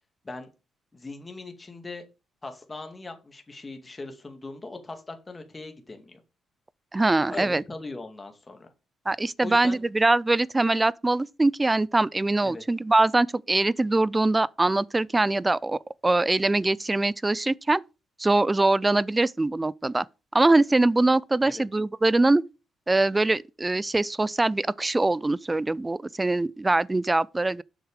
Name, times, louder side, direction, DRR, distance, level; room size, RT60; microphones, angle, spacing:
voice 1, 0.9-2.0 2.4-6.2 7.3-8.7 9.4-9.8 12.4-12.6 21.4-21.6, left 3 dB, 20° left, 2.2 m, -39 dB
voice 2, 6.9-7.6 9.1-17.8 18.2-20.1 20.3-22.4 22.9-27.6, right 2 dB, 15° right, 0.4 m, -23 dB
8.0 x 6.3 x 5.0 m
cardioid pair, 90°, 0 cm